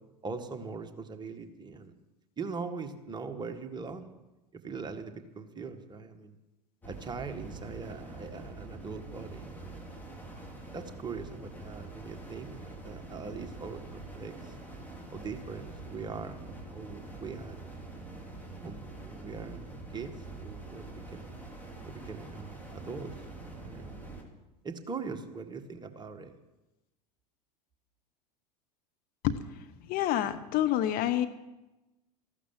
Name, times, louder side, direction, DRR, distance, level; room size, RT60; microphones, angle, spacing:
voice 1, 0.2-1.9 2.4-4.1 4.5-6.4 6.8-9.5 10.1-10.4 10.7-14.5 15.1-17.6 18.6-19.7 19.9-21.4 21.8-23.1 23.5-24.2 24.6-26.4, right 4 dB, 20° right, 6 dB, 1.7 m, -41 dB
sound 1, 6.8-24.2, right 2 dB, 10° left, 3.7 m, -45 dB
voice 2, 29.2-31.3, left 12 dB, 45° left, 9 dB, 1.1 m, -29 dB
15.0 x 12.0 x 7.5 m, 1.0 s
figure-of-eight pair, 80°, 21 cm